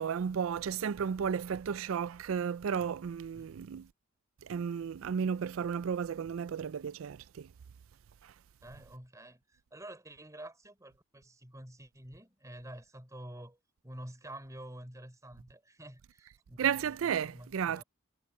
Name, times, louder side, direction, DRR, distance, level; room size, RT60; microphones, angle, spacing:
voice 1, 0.0-3.9 4.4-7.5 8.2-8.3 16.6-17.8, right 7 dB, 75° right, 0.4 m, -33 dB
voice 2, 8.6-13.6 13.8-17.8, right 1 dB, 15° right, 3.6 m, -49 dB
head